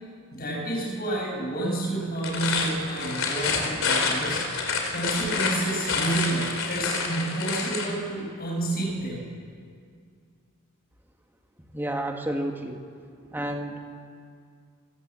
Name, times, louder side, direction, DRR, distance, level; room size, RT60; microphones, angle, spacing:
voice 1, 0.3-4.4 4.9-9.3, right 2 dB, 45° left, -2 dB, 7.9 m, -30 dB
sound 1, 2.1-7.9, left 4 dB, 65° left, 3.9 m, -28 dB
voice 2, 11.7-12.8 13.3-13.8, right 1 dB, 10° right, 3 dB, 2.0 m, -30 dB
26.5 x 17.0 x 7.8 m, 2.2 s
head